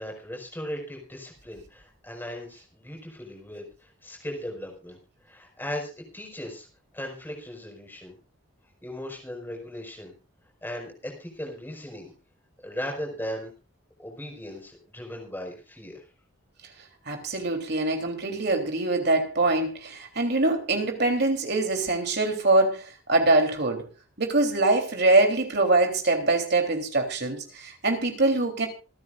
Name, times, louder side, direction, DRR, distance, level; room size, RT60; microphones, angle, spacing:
voice 1, 0.0-5.0 5.2-6.7 6.9-8.2 8.8-10.1 10.6-12.1 12.6-13.5 14.0-16.0, left 1 dB, 10° left, 1 dB, 5.2 m, -37 dB
voice 2, 17.1-23.8 24.2-28.7, right 2 dB, 55° right, 4 dB, 3.4 m, -23 dB
27.0 x 9.6 x 2.5 m, 0.33 s
head